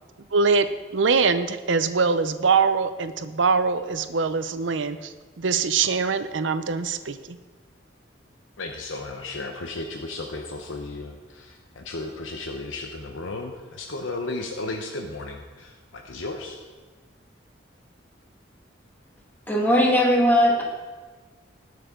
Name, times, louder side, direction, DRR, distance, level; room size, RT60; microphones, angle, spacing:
voice 1, 0.3-0.7 0.9-7.4, right 5 dB, 75° right, 11 dB, 0.6 m, -23 dB
voice 2, 8.6-16.6, left 2 dB, 85° left, 3 dB, 0.9 m, -34 dB
voice 3, 19.5-20.6, equal, 10° left, -2 dB, 1.8 m, -19 dB
19.0 x 6.6 x 3.8 m, 1.4 s
head